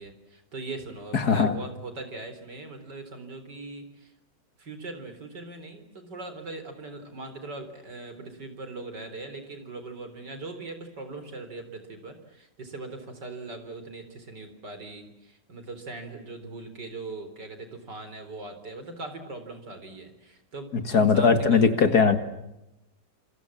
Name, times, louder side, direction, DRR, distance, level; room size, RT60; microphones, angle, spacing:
voice 1, 0.0-4.1 4.6-21.7, right 2 dB, 70° right, 9 dB, 4.6 m, -40 dB
voice 2, 1.1-1.5 20.9-22.2, left 5 dB, 60° left, 9 dB, 2.5 m, -20 dB
27.5 x 27.0 x 7.4 m, 0.89 s
omnidirectional pair, 1.9 m